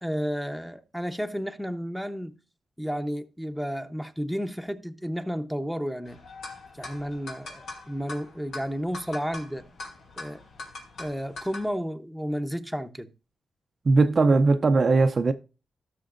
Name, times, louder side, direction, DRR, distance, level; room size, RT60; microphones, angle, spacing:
voice 1, 0.0-2.4 2.8-6.2 6.7-9.7 10.2-10.4 11.0-13.1, equal, ahead, 0.8 m, -32 dB
sound 1, 6.1-11.7, left 2 dB, 85° left, 3.4 m, -42 dB
voice 2, 13.8-15.3, right 3 dB, 40° right, 0.5 m, -19 dB
17.5 x 6.4 x 2.5 m
cardioid pair, 110°, 0 cm